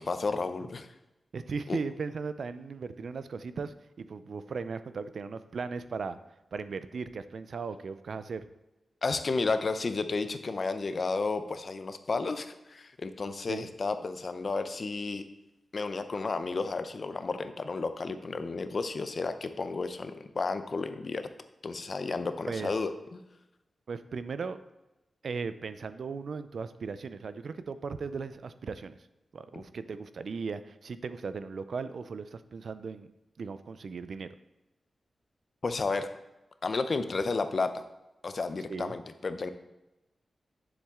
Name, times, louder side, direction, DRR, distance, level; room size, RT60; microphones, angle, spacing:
voice 1, 0.1-0.9 1.7-1.8 9.0-15.2 15.7-21.3 21.6-23.2 29.5-29.6 35.6-36.1 36.6-37.8 38.2-39.5, left 3 dB, 45° left, 10 dB, 0.6 m, -32 dB
voice 2, 1.3-6.2 6.5-8.4 13.5-13.7 22.5-22.7 23.9-24.6 25.2-29.0 29.3-33.1 33.4-34.3 38.7-38.9, right 5 dB, 65° right, 12 dB, 0.5 m, -37 dB
10.0 x 7.2 x 3.7 m, 0.96 s
wide cardioid pair, 155°, 0 cm